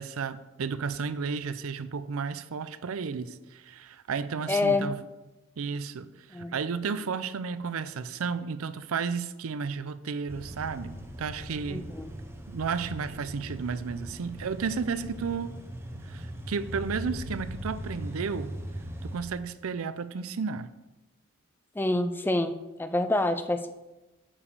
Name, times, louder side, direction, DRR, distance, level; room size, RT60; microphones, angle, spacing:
voice 1, 0.0-5.0 5.6-11.9 12.5-15.5 16.0-18.6 19.0-20.7, right 5 dB, 80° right, 0.5 m, -33 dB
voice 2, 4.5-4.9 6.3-6.5 11.7-12.1 21.8-23.7, left 2 dB, 10° left, 0.3 m, -27 dB
sound 1, 10.3-19.2, equal, 10° right, 0.8 m, -40 dB
8.5 x 5.0 x 6.8 m
head